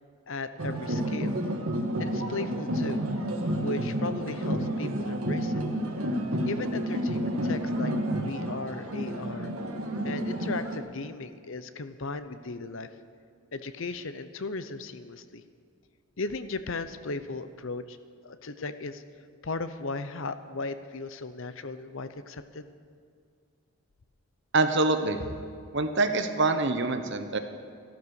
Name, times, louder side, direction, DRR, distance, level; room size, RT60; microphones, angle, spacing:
voice 1, 0.3-1.4 2.0-3.1 3.6-5.6 6.5-9.5 10.0-12.9 13.5-15.4 16.2-18.0 18.2-19.0 19.4-22.7, left 3 dB, 60° left, 11 dB, 0.7 m, -36 dB
sound 1, 0.6-10.8, right 1 dB, 75° right, 1.5 m, -30 dB
voice 2, 24.5-25.2 25.7-27.4, right 3 dB, 50° right, 8 dB, 1.0 m, -25 dB
14.0 x 12.5 x 6.6 m, 2.3 s
head